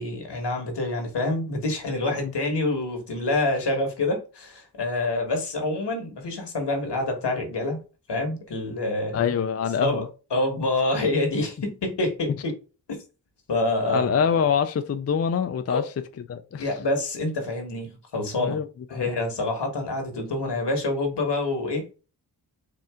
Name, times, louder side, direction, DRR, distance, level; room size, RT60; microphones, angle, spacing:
voice 1, 0.0-7.8 8.1-9.2 9.8-10.0 10.3-12.5 12.9-13.0 13.5-14.1 15.7-15.9 16.6-18.6 18.9-21.8, left 2 dB, 75° left, 1.5 m, -27 dB
voice 2, 9.1-10.1 13.9-15.9 16.3-16.7 18.4-18.7 18.9-19.1, left 7 dB, 40° left, 0.4 m, -25 dB
4.3 x 2.5 x 3.5 m
wide cardioid pair, 75°, 41 cm